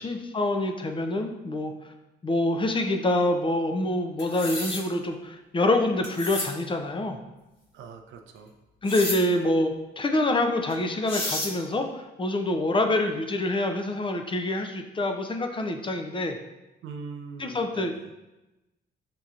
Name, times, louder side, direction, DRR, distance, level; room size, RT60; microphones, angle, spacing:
voice 1, 0.0-1.9 2.2-7.2 8.8-16.4 17.4-17.9, left 1 dB, 25° left, 5 dB, 0.5 m, -26 dB
sound 1, 4.2-4.8 6.0-6.5 8.8-9.2 10.7-10.8 11.1-11.5, left 1 dB, 65° left, 1.4 m, -31 dB
voice 2, 7.7-8.5 16.8-18.1, right 5 dB, 80° right, 6 dB, 0.5 m, -42 dB
6.7 x 2.9 x 2.5 m, 1.0 s
cardioid pair, 90°, 20 cm